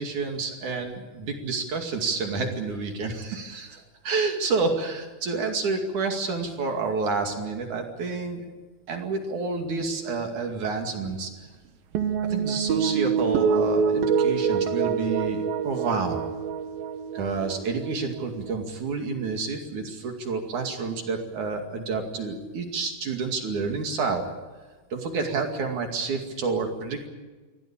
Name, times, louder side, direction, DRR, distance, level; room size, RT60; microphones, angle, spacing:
voice 1, 0.0-8.5 8.9-11.3 12.3-16.2 17.1-24.3 24.9-27.1, right 4 dB, 45° right, 4 dB, 3.1 m, -29 dB
sound 1, 12.0-18.5, right 6 dB, 65° right, 2.5 m, -26 dB
24.0 x 17.5 x 8.9 m, 1.3 s
omnidirectional pair, 5.6 m